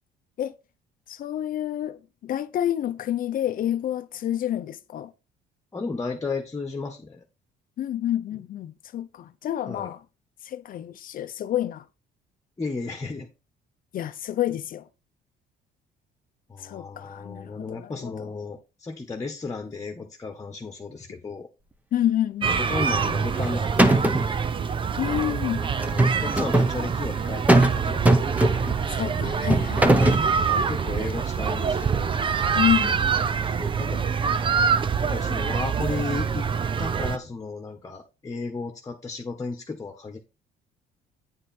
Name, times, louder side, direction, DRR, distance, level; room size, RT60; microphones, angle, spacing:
voice 1, 1.1-5.1 7.8-10.0 10.4-11.9 13.9-14.9 16.6-18.3 21.9-22.6 25.0-25.7 28.6-30.2 32.5-33.0, left 11 dB, 55° left, 0.8 m, -29 dB
voice 2, 5.7-7.2 9.7-9.9 12.6-13.3 16.5-21.5 22.5-24.5 25.6-28.4 30.5-32.1 33.4-34.1 35.0-36.5 36.8-40.2, left 4 dB, 20° left, 1.5 m, -34 dB
sound 1, 22.4-37.2, right 6 dB, 30° right, 0.7 m, -25 dB
sound 2, 23.1-23.5 23.8-24.3 25.8-26.7 27.5-27.8 28.1-28.8 29.5-30.3, right 1 dB, 10° right, 1.2 m, -19 dB
9.7 x 5.2 x 4.4 m
cardioid pair, 110°, 17 cm